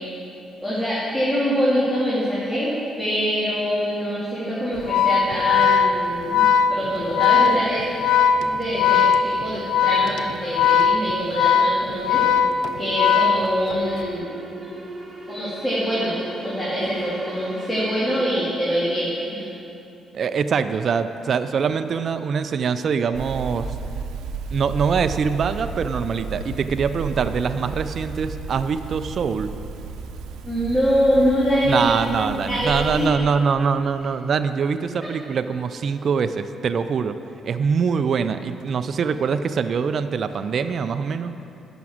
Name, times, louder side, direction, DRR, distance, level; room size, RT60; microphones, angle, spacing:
voice 1, 0.6-2.7 3.0-7.8 8.4-12.2 12.8-14.3 14.6-14.7 15.3-19.5 30.4-32.0 32.5-33.1, equal, 10° left, -9 dB, 2.7 m, -24 dB
Organ, 4.8-13.9, left 7 dB, 85° left, 0.5 m, -19 dB
sound 1, 8.2-18.2, right 2 dB, 30° right, 1.9 m, -40 dB
voice 2, 20.1-23.7 24.5-29.5 31.6-37.2 37.4-41.3, right 6 dB, 55° right, 10 dB, 0.4 m, -23 dB
sound 2, 23.1-33.1, right 4 dB, 90° right, 0.7 m, -33 dB
11.0 x 6.1 x 7.2 m, 2.8 s
cardioid pair, 90°, 0 cm